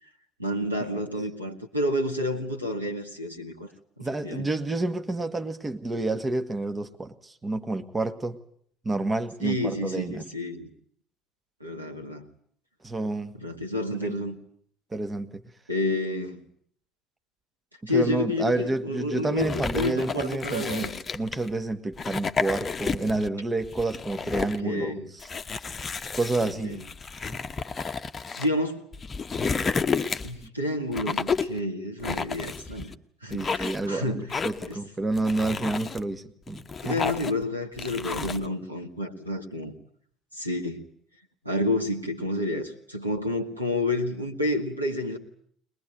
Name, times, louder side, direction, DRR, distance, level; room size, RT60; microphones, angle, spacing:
voice 1, 0.4-3.7 4.0-4.5 9.4-10.7 11.6-12.2 13.4-14.4 15.7-16.4 17.9-21.0 24.4-25.0 26.4-26.8 28.4-28.8 30.2-32.9 33.2-34.3 34.7-34.8 36.8-39.7 40.3-40.9 41.4-45.2, left 1 dB, 90° right, 3 dB, 2.0 m, -29 dB
voice 2, 4.0-8.4 8.8-10.2 12.8-13.4 14.0-14.1 14.9-15.4 17.8-20.9 21.1-25.3 26.1-26.8 33.3-37.0, right 2 dB, 20° right, 8 dB, 1.9 m, -29 dB
Balloon-stretches-vocal, 19.4-21.5 21.9-23.3 23.6-24.6 25.2-28.5 28.9-30.4 30.9-31.6 32.0-32.9 33.3-33.9 34.3-34.7 35.2-36.0 36.5-37.4 37.8-38.5, left 5 dB, 30° left, 1.1 m, -31 dB
22.0 x 21.0 x 9.3 m, 0.64 s
figure-of-eight pair, 55°, 0 cm